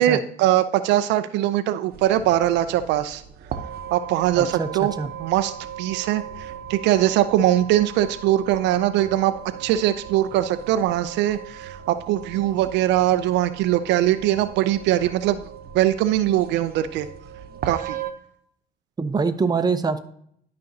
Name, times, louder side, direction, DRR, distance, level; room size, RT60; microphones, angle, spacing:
voice 1, 0.0-3.2 3.9-4.9 5.2-5.5 5.8-9.3 9.6-15.4 15.7-17.1 17.6-18.0, right 13 dB, 80° right, 11 dB, 0.5 m, -21 dB
sound 1, 1.9-18.1, right 8 dB, 60° right, 0.9 m, -38 dB
voice 2, 4.4-4.7 5.0-5.1 19.0-20.0, right 4 dB, 20° right, 8 dB, 0.7 m, -24 dB
11.5 x 5.2 x 2.8 m, 0.66 s
supercardioid pair, 85°, 18 cm